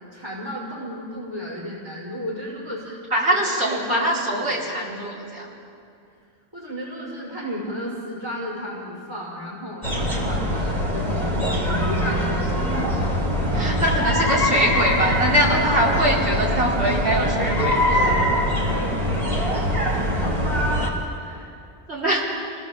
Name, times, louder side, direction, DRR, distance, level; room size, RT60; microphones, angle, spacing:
voice 1, 0.1-3.0 3.4-4.5 6.5-13.7 14.2-14.4 18.0-19.3 19.9-21.5, equal, 20° right, -5 dB, 5.3 m, -33 dB
voice 2, 3.1-5.5 13.5-18.0 21.9-22.3, right 1 dB, 75° right, -5 dB, 4.7 m, -23 dB
sound 1, 9.8-20.9, equal, 40° right, 3.9 m, -23 dB
28.0 x 19.5 x 7.3 m, 2.5 s
omnidirectional pair, 1.1 m